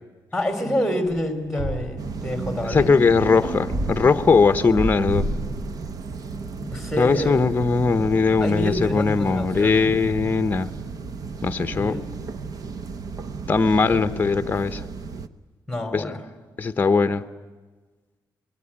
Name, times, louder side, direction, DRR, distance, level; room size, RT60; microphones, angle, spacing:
voice 1, 0.3-2.9 6.7-7.4 8.4-9.9 11.7-12.0 13.9-14.0 15.7-16.2, equal, ahead, 6 dB, 3.3 m, -27 dB
sound 1, 0.6-4.1, right 3 dB, 70° right, 3.2 m, -47 dB
sound 2, 1.1-2.3 2.7-6.7 7.0-9.2 9.5-10.9, right 1 dB, 40° right, 4.7 m, -33 dB
sound 3, 2.0-15.3, right 4 dB, 55° right, 1.0 m, -34 dB
voice 2, 2.7-5.3 6.6-10.7 11.4-11.9 13.5-14.8 15.9-16.1 16.6-17.2, left 4 dB, 25° left, 10 dB, 0.9 m, -20 dB
26.0 x 21.5 x 9.9 m, 1.3 s
wide cardioid pair, 155°, 7 cm